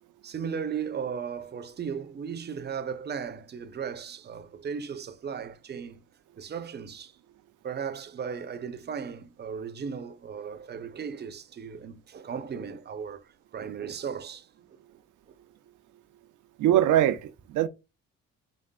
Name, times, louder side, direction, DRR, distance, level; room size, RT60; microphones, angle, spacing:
voice 1, 0.2-6.0 6.4-7.1 7.6-14.5, right 7 dB, 35° right, 0.6 m, -36 dB
voice 2, 16.6-17.7, right 11 dB, 80° right, 0.6 m, -22 dB
5.2 x 3.4 x 2.2 m
cardioid pair, 90°, 30 cm